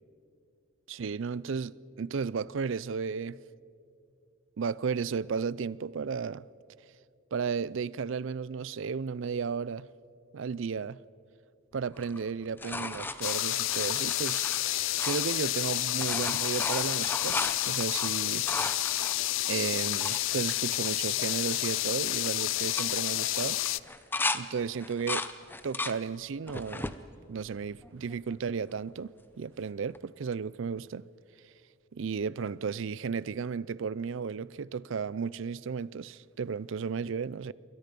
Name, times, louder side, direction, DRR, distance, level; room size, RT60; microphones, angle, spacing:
voice 1, 0.9-3.4 4.6-6.5 7.3-9.9 10.3-11.0 11.7-18.5 19.5-23.6 24.3-25.3 25.6-26.9 27.3-29.1 29.4-31.0 31.9-37.5, right 5 dB, 65° right, 0.4 m, -34 dB
sound 1, 11.9-15.6 15.9-20.2 20.8-20.9 21.1-21.6 21.8-22.2 22.6-24.4 24.8-26.0 26.5-27.0 27.6-28.3 29.9-30.0, left 3 dB, 10° left, 0.6 m, -36 dB
sound 2, 13.2-23.8, left 16 dB, 65° left, 0.4 m, -30 dB
27.5 x 22.5 x 5.3 m
head